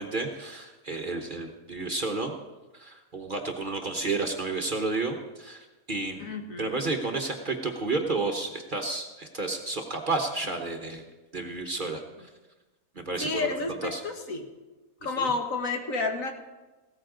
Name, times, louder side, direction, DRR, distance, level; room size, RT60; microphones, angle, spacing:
voice 1, 0.0-2.3 2.7-11.0 11.3-12.3 13.0-13.5 13.8-14.0 15.2-15.3, right 3 dB, 40° right, 3 dB, 1.1 m, -31 dB
voice 2, 6.2-6.9 13.2-14.5 15.0-16.3, left 3 dB, 65° left, 4 dB, 1.6 m, -30 dB
16.0 x 13.5 x 3.9 m, 1.2 s
omnidirectional pair, 1.6 m